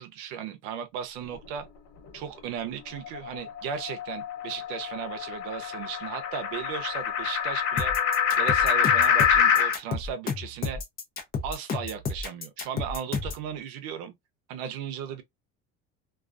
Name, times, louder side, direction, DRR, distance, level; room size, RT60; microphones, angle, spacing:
voice 1, 0.0-1.7 2.1-7.9 8.4-10.8 11.4-14.1 14.5-15.2, right 8 dB, 85° right, 0.5 m, -36 dB
sound 1, 3.0-9.8, left 8 dB, 70° left, 0.8 m, -25 dB
sound 2, 7.8-13.4, left 4 dB, 30° left, 0.6 m, -32 dB
2.3 x 2.2 x 2.4 m
cardioid pair, 135°, 30 cm